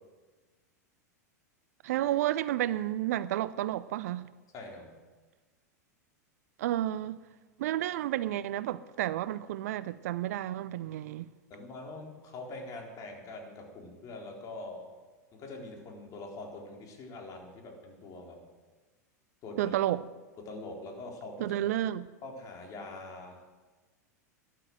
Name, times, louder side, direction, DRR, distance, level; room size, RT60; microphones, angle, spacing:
voice 1, 1.8-4.2 6.6-7.2 7.6-11.3 19.6-20.0 21.4-22.1, right 13 dB, 60° right, 0.6 m, -31 dB
voice 2, 4.5-4.9 11.5-14.9 15.3-18.4 19.4-19.8 20.5-21.5 22.2-23.4, left 2 dB, 40° left, 4.1 m, -43 dB
12.5 x 10.5 x 7.9 m
figure-of-eight pair, 90°, 9 cm